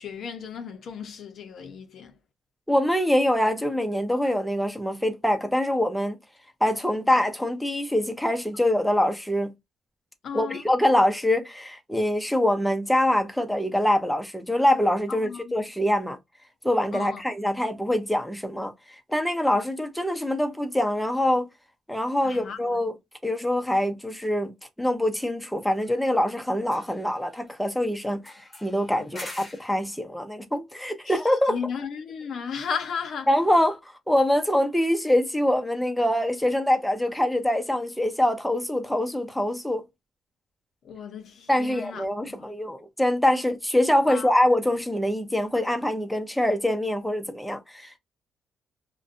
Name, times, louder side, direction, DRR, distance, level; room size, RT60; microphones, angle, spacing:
voice 1, 0.0-2.2 10.2-10.6 15.1-15.5 16.9-17.2 22.2-22.8 29.0-29.3 31.1-33.3 40.8-42.5 44.1-44.3, left 6 dB, 65° left, 0.5 m, -35 dB
voice 2, 2.7-6.2 6.6-9.5 10.3-16.2 16.6-21.5 21.9-22.9 23.2-24.5 24.8-31.6 33.3-33.8 34.1-39.8 41.5-48.0, left 1 dB, 5° left, 0.6 m, -24 dB
sound 1, 22.2-22.4 25.6-26.3 26.6-27.7 28.2-29.8, left 1 dB, 20° left, 0.9 m, -45 dB
2.5 x 2.1 x 2.4 m
cardioid pair, 90°, 0 cm